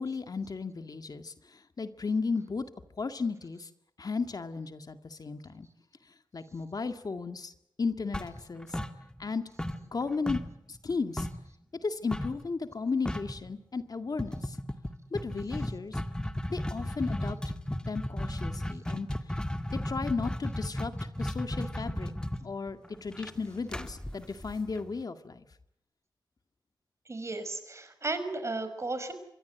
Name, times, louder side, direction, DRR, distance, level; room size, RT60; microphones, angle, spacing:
voice 1, 0.0-2.7 3.0-3.7 4.0-5.7 6.3-7.5 7.8-8.8 9.2-9.4 9.9-10.4 10.7-11.3 11.8-14.6 15.1-16.0 16.5-19.1 19.7-22.1 22.4-25.5, left 4 dB, 55° left, 8 dB, 1.9 m, -34 dB
sound 1, 8.1-9.3 9.6-11.5 12.1-12.4 12.7-12.8 13.0-13.4 14.2-25.0, left 1 dB, 10° left, 1.9 m, -34 dB
voice 2, 27.1-29.1, right 2 dB, 35° right, 10 dB, 5.5 m, -34 dB
26.5 x 23.0 x 8.1 m, 0.77 s
wide cardioid pair, 90°, 8 cm